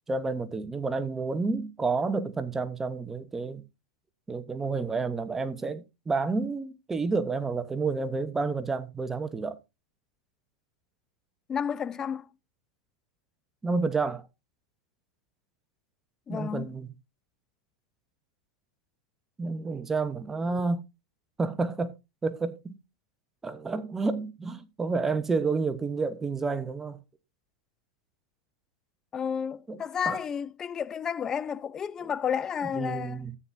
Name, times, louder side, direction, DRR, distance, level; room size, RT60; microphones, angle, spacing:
voice 1, 0.1-3.6 4.3-9.6 13.6-14.3 16.3-16.9 19.4-20.8 21.4-21.9 22.2-22.8 23.4-27.0 29.7-29.8 30.1-30.2 32.0-32.1 32.7-33.3, right 4 dB, 15° right, 1.2 m, -30 dB
voice 2, 11.5-12.3 16.3-16.7 29.1-33.2, left 7 dB, 25° left, 0.8 m, -31 dB
14.0 x 9.1 x 2.8 m
hypercardioid pair, 105°, 2 cm